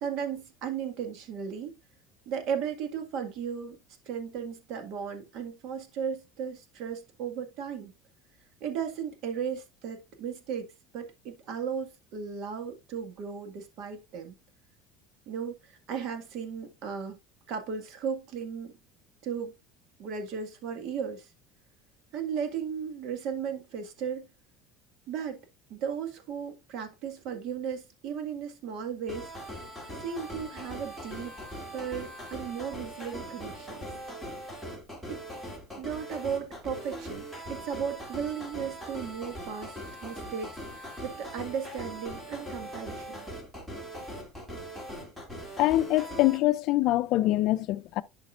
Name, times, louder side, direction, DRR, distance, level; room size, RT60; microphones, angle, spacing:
voice 1, 0.0-1.7 2.3-3.8 4.1-7.9 8.6-10.7 10.9-14.3 15.3-17.2 17.5-18.7 19.2-19.5 20.0-21.3 22.1-24.3 25.1-25.4 25.7-29.3 30.0-31.3 31.7-33.8 35.1-35.2 35.8-43.3, right 7 dB, 55° right, 1.7 m, -35 dB
sound 1, 29.1-46.4, equal, 5° right, 2.7 m, -41 dB
voice 2, 45.6-48.0, left 16 dB, 55° left, 0.5 m, -24 dB
11.5 x 5.2 x 2.5 m
cardioid pair, 145°, 0 cm